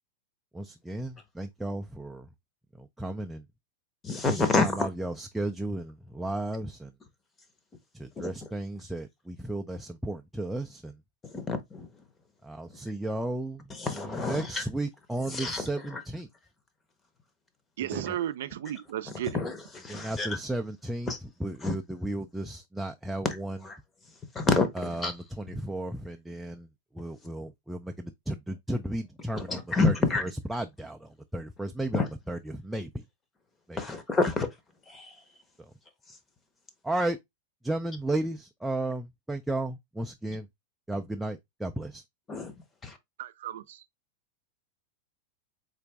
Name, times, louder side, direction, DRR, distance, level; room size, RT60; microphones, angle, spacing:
voice 1, 0.5-2.3 2.8-3.4 4.3-6.9 7.9-11.0 12.4-13.6 13.9-16.3 17.8-18.2 19.9-21.1 21.4-23.6 24.8-26.7 26.9-33.0 33.7-33.8 35.6-35.7 36.8-37.2 37.6-40.5 40.9-42.0, right 1 dB, 5° right, 0.3 m, -34 dB
voice 2, 4.0-4.9 8.2-8.3 11.3-11.9 13.7-14.6 15.3-15.6 15.9-16.0 19.3-20.4 21.1-21.2 21.6-21.8 23.6-23.8 24.3-24.7 25.0-25.1 29.3-30.2 31.9-32.1 33.8-34.5 34.9-35.1 42.3-42.5 42.8-43.0, left 3 dB, 15° left, 0.8 m, -28 dB
voice 3, 17.8-19.4 43.2-43.8, right 12 dB, 75° right, 0.4 m, -34 dB
3.9 x 2.5 x 3.3 m
supercardioid pair, 140°, 0 cm